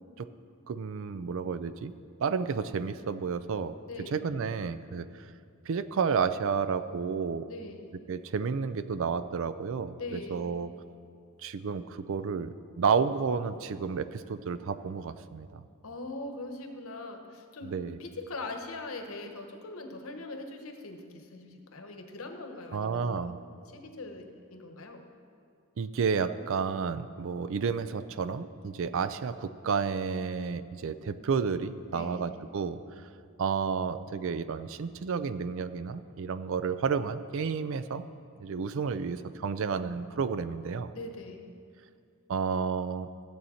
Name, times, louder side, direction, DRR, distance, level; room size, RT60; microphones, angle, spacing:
voice 1, 0.7-1.9 2.2-3.7 4.1-5.1 5.7-7.5 8.1-10.7 11.4-15.6 17.6-18.0 22.7-23.4 25.8-32.8 33.4-38.0 38.4-40.9 42.3-43.1, right 5 dB, 60° right, 13 dB, 0.4 m, -31 dB
voice 2, 3.9-4.2 7.5-7.9 10.0-10.5 15.8-17.7 18.0-23.3 23.7-25.0 31.9-32.3 40.9-41.4, left 2 dB, 65° left, 5 dB, 1.0 m, -41 dB
14.0 x 7.7 x 4.3 m, 2.3 s
head